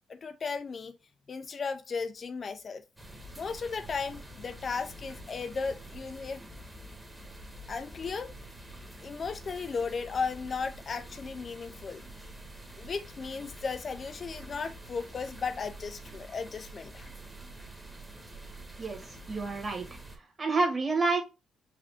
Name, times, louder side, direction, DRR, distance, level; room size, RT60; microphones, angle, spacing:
voice 1, 0.1-0.9 1.3-2.8 3.4-6.4 7.7-8.3 9.0-12.0 12.8-17.1, left 5 dB, 45° left, 0.4 m, -35 dB
sound 1, 3.0-20.2, right 1 dB, 10° right, 1.2 m, -47 dB
voice 2, 18.8-19.9 20.2-21.2, right 3 dB, 30° right, 1.7 m, -29 dB
4.9 x 2.6 x 3.4 m
cardioid pair, 90°, 0 cm